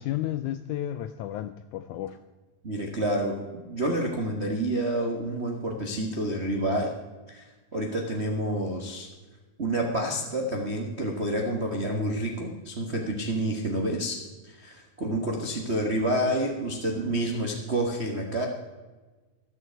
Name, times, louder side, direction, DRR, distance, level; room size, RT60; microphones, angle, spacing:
voice 1, 0.0-2.2, left 12 dB, 85° left, 11 dB, 1.7 m, -32 dB
voice 2, 2.6-6.9 7.3-7.4 7.7-9.1 9.6-14.2 14.4-18.5, right 1 dB, 75° right, 0 dB, 0.6 m, -28 dB
14.0 x 13.5 x 4.6 m, 1.2 s
omnidirectional pair, 4.0 m